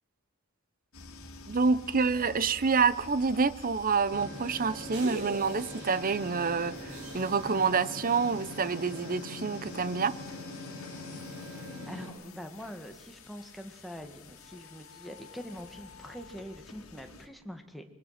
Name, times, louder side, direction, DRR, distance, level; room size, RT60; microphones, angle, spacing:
sound 1, 0.9-17.3, left 4 dB, 75° left, 2.5 m, -50 dB
voice 1, 1.5-10.2, right 5 dB, 40° right, 0.8 m, -27 dB
sound 2, 4.1-12.1, equal, 80° right, 6.3 m, -41 dB
voice 2, 11.9-17.8, equal, ahead, 1.8 m, -44 dB
25.5 x 23.0 x 5.9 m
head